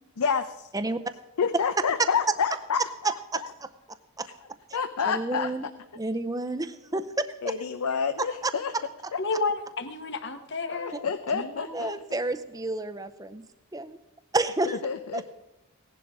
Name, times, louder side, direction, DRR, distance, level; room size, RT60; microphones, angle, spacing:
voice 1, 0.2-0.7 1.4-2.8 3.1-3.2 4.7-5.5 7.4-8.7 10.7-12.2 14.7-15.3, left 6 dB, 90° left, 9 dB, 0.6 m, -28 dB
voice 2, 3.0-3.4 4.2-4.3 5.1-5.7 6.0-7.5 8.2-8.5 9.0-9.1 10.9-11.0 11.7-13.4 13.7-14.0 14.3-14.8 15.1-15.3, right 2 dB, 15° right, 10 dB, 0.6 m, -30 dB
voice 3, 9.2-11.8, left 3 dB, 50° left, 8 dB, 1.1 m, -32 dB
17.0 x 11.0 x 3.6 m, 0.98 s
head